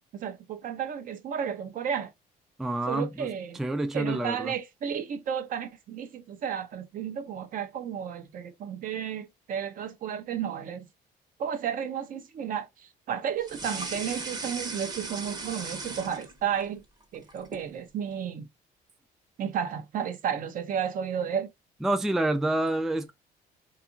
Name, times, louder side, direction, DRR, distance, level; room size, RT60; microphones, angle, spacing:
voice 1, 0.0-2.1 2.9-3.6 3.9-10.9 11.4-16.8 17.1-18.5 19.4-21.5, right 8 dB, 55° right, 0.6 m, -33 dB
voice 2, 2.6-3.3 3.6-4.5 21.8-23.1, right 1 dB, ahead, 0.3 m, -28 dB
sound 1, 13.4-16.6 17.0-17.7, right 3 dB, 25° right, 0.8 m, -37 dB
2.8 x 2.4 x 2.5 m
cardioid pair, 110°, 17 cm